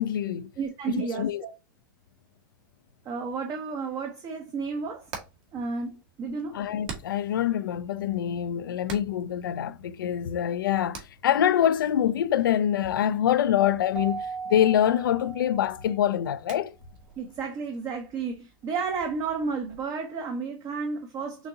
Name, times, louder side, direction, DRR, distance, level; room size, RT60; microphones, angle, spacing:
voice 1, 0.0-0.5 0.9-1.5 6.5-16.7, left 10 dB, 75° left, 0.5 m, -25 dB
voice 2, 0.6-1.5 3.0-5.1 5.5-6.6 17.2-21.5, right 5 dB, 30° right, 0.9 m, -32 dB
Hammer, 4.6-19.8, right 5 dB, 50° right, 1.6 m, -49 dB
Keyboard (musical), 13.9-16.2, right 5 dB, 5° right, 0.5 m, -37 dB
5.9 x 2.7 x 2.8 m
hypercardioid pair, 110°, 11 cm